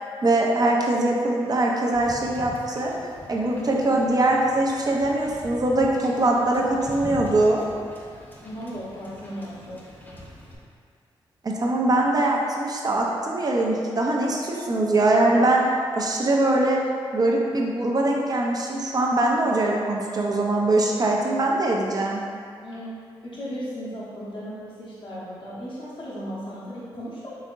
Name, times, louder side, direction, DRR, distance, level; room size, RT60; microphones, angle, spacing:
voice 1, 0.2-2.9 3.3-7.6 11.4-15.6 15.9-16.8 17.1-22.2, right 2 dB, 40° right, -1 dB, 0.7 m, -22 dB
Wind / Boat Water vehicle, 1.9-10.6, equal, 20° left, 1.0 m, -42 dB
voice 2, 8.4-9.8 22.6-23.0 23.2-27.4, equal, 55° left, -9 dB, 1.0 m, -36 dB
4.2 x 3.4 x 2.5 m, 2.2 s
supercardioid pair, 55°, 10 cm